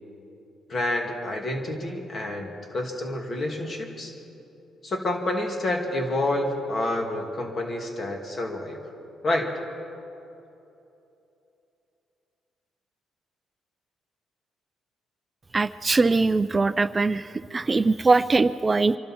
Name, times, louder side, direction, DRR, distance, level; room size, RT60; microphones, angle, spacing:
voice 1, 0.7-4.1 4.8-8.8 9.2-9.5, left 1 dB, 45° left, 2 dB, 2.6 m, -28 dB
voice 2, 15.5-19.0, right 3 dB, 25° right, 13 dB, 0.4 m, -22 dB
25.5 x 12.5 x 4.5 m, 2.8 s
cardioid pair, 90°, 0 cm